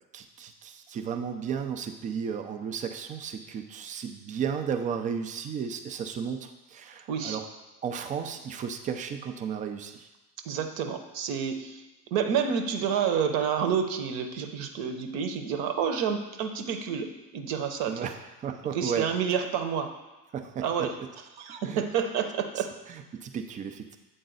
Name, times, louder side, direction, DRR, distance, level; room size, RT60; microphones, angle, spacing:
voice 1, 0.1-7.5 7.8-10.1 17.9-19.1 20.3-20.9 21.6-21.8 22.6-24.0, right 7 dB, 20° right, 7 dB, 0.4 m, -34 dB
voice 2, 7.1-7.4 10.5-11.8 12.1-18.1 18.7-19.9 20.6-20.9 21.4-22.7, right 7 dB, 50° right, 6 dB, 0.8 m, -29 dB
7.8 x 3.9 x 3.9 m, 1.1 s
hypercardioid pair, 85°, 47 cm